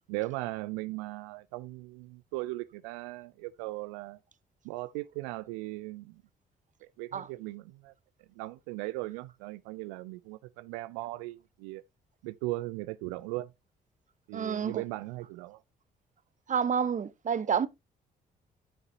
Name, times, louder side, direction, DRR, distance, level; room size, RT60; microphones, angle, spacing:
voice 1, 0.1-4.2 4.6-6.2 7.0-7.9 8.4-11.8 12.2-13.5 14.3-15.6, right 20 dB, 80° right, 0.4 m, -38 dB
voice 2, 14.3-14.8 16.5-17.7, right 7 dB, 40° right, 0.8 m, -29 dB
9.9 x 6.7 x 2.7 m
hypercardioid pair, 45°, 20 cm